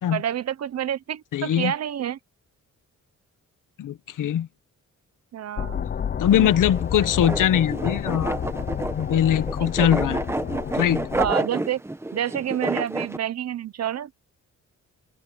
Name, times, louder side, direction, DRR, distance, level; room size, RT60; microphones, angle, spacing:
voice 1, 0.1-2.2 5.3-5.8 6.4-6.5 9.6-9.9 11.2-11.8 12.1-14.1, right 10 dB, 55° right, 0.8 m, -28 dB
voice 2, 1.3-1.7 3.8-4.5 6.2-8.4 9.0-10.2 10.7-11.0, left 10 dB, 85° left, 1.1 m, -21 dB
sound 1, 5.6-11.3, left 8 dB, 35° left, 0.5 m, -30 dB
sound 2, 6.3-13.2, right 2 dB, 10° right, 0.9 m, -30 dB
open air
wide cardioid pair, 180°, 31 cm